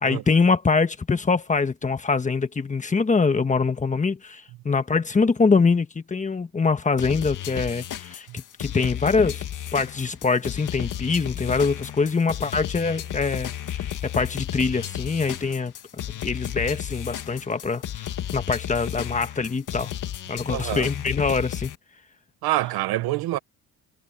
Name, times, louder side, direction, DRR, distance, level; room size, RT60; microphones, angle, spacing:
voice 1, 0.0-9.4 9.7-15.7 16.2-17.8 18.3-19.9 20.3-21.7, left 4 dB, 20° left, 1.3 m, -24 dB
sound 1, 7.0-21.8, left 10 dB, 55° left, 2.2 m, -33 dB
voice 2, 20.5-20.9 22.4-23.4, right 16 dB, 85° right, 1.1 m, -26 dB
cardioid pair, 130°, 36 cm